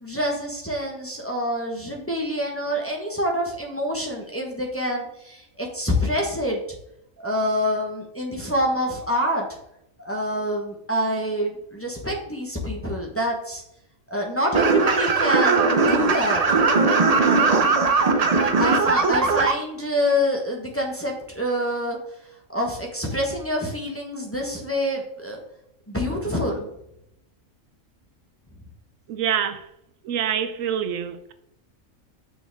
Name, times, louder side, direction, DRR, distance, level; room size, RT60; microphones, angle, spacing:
voice 1, 0.0-6.6 7.2-9.5 10.0-13.6 14.1-16.6 18.6-22.0 22.5-25.4 25.9-26.7, equal, 10° left, 1.1 m, -26 dB
sound 1, 14.5-19.5, right 4 dB, 45° right, 0.5 m, -19 dB
voice 2, 29.1-29.7 30.0-31.3, right 8 dB, 80° right, 1.0 m, -26 dB
6.3 x 6.2 x 3.5 m
omnidirectional pair, 1.4 m